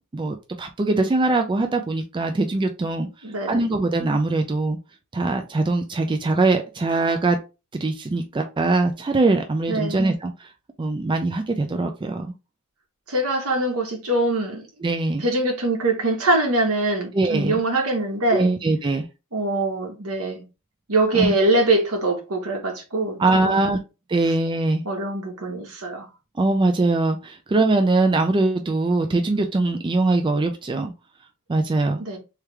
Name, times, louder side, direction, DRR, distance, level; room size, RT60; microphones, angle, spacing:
voice 1, 0.1-3.1 3.5-4.8 5.1-7.4 7.8-10.5 10.8-12.3 14.8-15.2 17.1-17.6 18.3-19.0 21.1-21.3 23.2-23.8 24.1-24.8 26.4-30.9 31.5-32.0, right 2 dB, 20° right, 0.4 m, -22 dB
voice 2, 3.2-3.7 9.7-10.1 13.1-14.7 15.2-18.5 19.3-20.4 20.9-23.2 23.4-23.7 24.8-26.1 32.0-32.2, right 2 dB, 75° right, 1.3 m, -23 dB
3.4 x 3.2 x 3.2 m
head